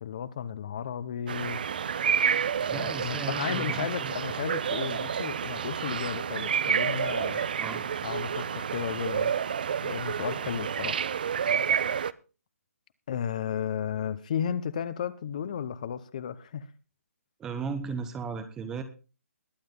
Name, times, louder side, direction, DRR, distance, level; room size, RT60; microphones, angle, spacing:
voice 1, 0.0-1.6 2.7-7.5 8.0-9.3 9.8-11.0 13.1-16.7, left 8 dB, 30° left, 0.8 m, -34 dB
sound 1, 1.3-12.1, right 7 dB, 35° right, 0.5 m, -29 dB
voice 2, 2.7-4.1 7.6-7.8 17.4-18.8, right 5 dB, 5° right, 0.8 m, -35 dB
21.5 x 7.7 x 3.8 m
hypercardioid pair, 170°, 8 cm